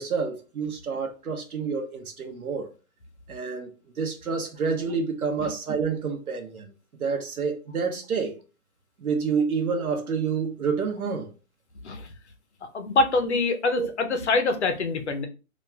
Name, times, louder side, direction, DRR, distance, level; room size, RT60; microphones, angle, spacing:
voice 1, 0.0-2.7 3.3-3.7 4.0-6.7 7.0-8.4 9.0-11.3 13.7-13.9, right 5 dB, 85° right, 0.9 m, -28 dB
voice 2, 12.7-15.3, left 3 dB, 50° left, 0.5 m, -25 dB
3.0 x 2.3 x 2.2 m
hypercardioid pair, 175°, 43 cm